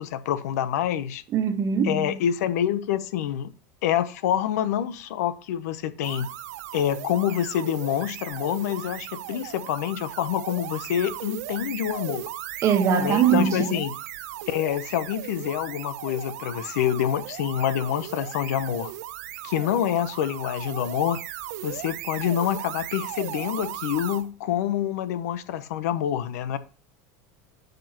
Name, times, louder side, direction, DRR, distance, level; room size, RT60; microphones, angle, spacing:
voice 1, 0.0-1.2 1.8-3.5 3.8-6.3 6.7-12.3 13.0-13.9 14.5-18.9 19.4-21.2 21.6-26.6, left 10 dB, 85° left, 0.8 m, -27 dB
voice 2, 1.3-2.2 12.6-13.8, right 7 dB, 35° right, 1.3 m, -22 dB
sound 1, 6.0-24.3, right 14 dB, 80° right, 0.7 m, -37 dB
12.0 x 5.4 x 3.0 m
supercardioid pair, 140°, 8 cm